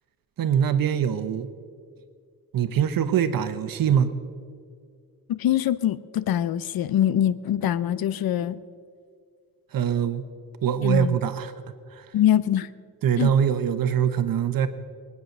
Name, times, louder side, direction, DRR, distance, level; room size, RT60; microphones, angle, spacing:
voice 1, 0.4-1.5 2.5-4.1 9.7-10.2 10.6-11.5 11.9-12.1 13.0-14.7, right 8 dB, 70° right, 10 dB, 1.0 m, -23 dB
voice 2, 5.3-8.6 10.8-11.2 12.1-12.7 13.2-13.3, left 11 dB, 75° left, 17 dB, 0.6 m, -23 dB
22.0 x 9.6 x 6.6 m, 2.2 s
wide cardioid pair, 165°, 36 cm